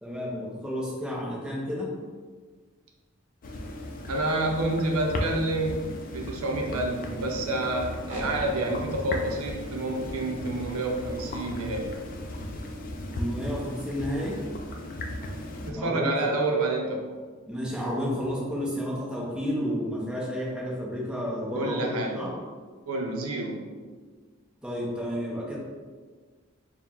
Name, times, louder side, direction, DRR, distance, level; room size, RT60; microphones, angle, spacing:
voice 1, 0.0-1.9 13.1-14.4 15.7-16.3 17.5-22.3 24.6-25.6, equal, 5° right, -5 dB, 0.8 m, -31 dB
sound 1, 3.4-15.7, left 1 dB, 40° left, 0.4 m, -36 dB
voice 2, 4.1-5.9 6.1-11.9 15.7-17.0 21.5-22.2 22.9-23.7, right 2 dB, 85° right, 1 dB, 0.6 m, -28 dB
sound 2, 8.1-13.6, equal, 40° right, 1.3 m, -45 dB
4.5 x 2.2 x 3.7 m, 1.5 s
head